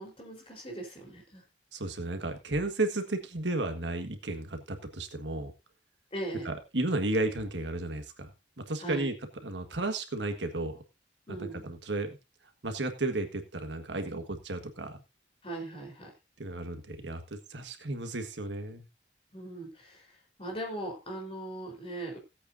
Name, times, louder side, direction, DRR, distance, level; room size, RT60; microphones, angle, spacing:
voice 1, 0.0-1.4 6.1-6.5 8.8-9.1 11.3-11.6 15.4-16.1 19.3-22.2, right 2 dB, 30° left, 0 dB, 4.1 m, -39 dB
voice 2, 1.7-5.5 6.4-8.3 8.6-9.1 9.4-10.8 11.3-12.2 12.6-15.0 16.4-18.9, right 2 dB, 75° right, 7 dB, 1.6 m, -33 dB
17.5 x 8.2 x 2.7 m, 0.25 s
head